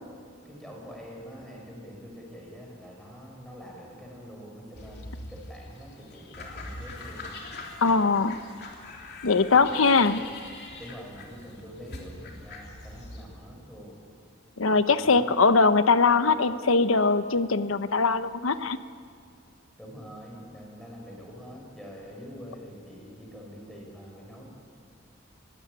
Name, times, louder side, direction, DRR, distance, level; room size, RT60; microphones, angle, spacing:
voice 1, 0.4-7.3 9.5-10.2 10.8-14.0 14.9-15.4 19.8-24.4, equal, ahead, -1 dB, 5.8 m, -45 dB
sound 1, 4.7-13.3, left 2 dB, 55° left, 3.3 m, -42 dB
voice 2, 7.8-8.4 9.2-10.2 14.6-18.8, left 4 dB, 80° left, 12 dB, 0.9 m, -21 dB
22.0 x 16.5 x 9.7 m, 2.2 s
head